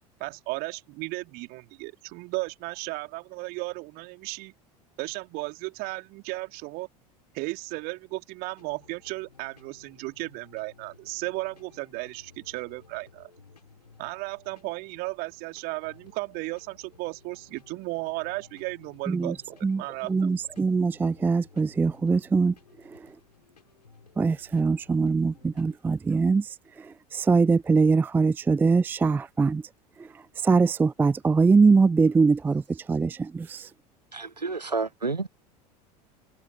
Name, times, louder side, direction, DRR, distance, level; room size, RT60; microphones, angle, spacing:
voice 1, 0.2-4.5 5.0-6.9 7.3-13.3 14.0-20.3, right 24 dB, 50° right, 3.3 m, -35 dB
sound 1, 8.6-25.8, left 5 dB, 80° left, 6.3 m, -57 dB
voice 2, 19.1-19.4 19.6-22.6 22.8-23.1 24.2-29.6 30.0-33.7, right 4 dB, 10° right, 0.4 m, -23 dB
voice 3, 34.1-35.3, right 4 dB, 85° right, 1.0 m, -30 dB
figure-of-eight pair, 75°, 21 cm